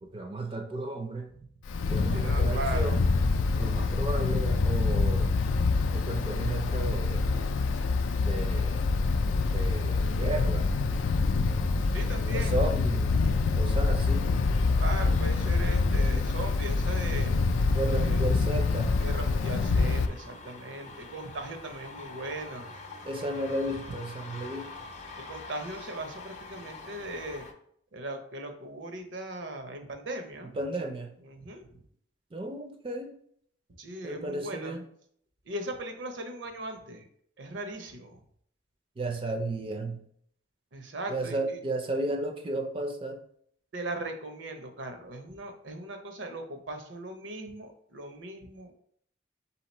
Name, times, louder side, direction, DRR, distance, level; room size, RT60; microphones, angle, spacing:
voice 1, 0.0-1.3 1.9-3.0 3.6-5.3 5.9-7.3 8.2-8.9 9.5-10.7 12.2-13.1 13.6-14.3 17.7-19.0 23.0-24.7 30.5-31.2 32.3-33.1 34.0-34.8 39.0-40.0 41.1-43.2, right 2 dB, 30° right, 4 dB, 0.4 m, -33 dB
Wind, 1.7-20.1, left 3 dB, 90° left, 0.4 m, -26 dB
voice 2, 2.1-3.0 11.9-12.6 14.8-17.3 18.0-18.2 19.0-22.7 25.2-27.4 27.9-30.5 31.3-31.7 33.8-34.8 35.5-37.1 37.4-38.2 40.7-41.6 43.7-48.7, right 2 dB, 80° right, 5 dB, 0.7 m, -38 dB
sound 1, 13.9-27.5, left 3 dB, 40° left, 0.6 m, -46 dB
3.9 x 2.8 x 4.1 m, 0.65 s
head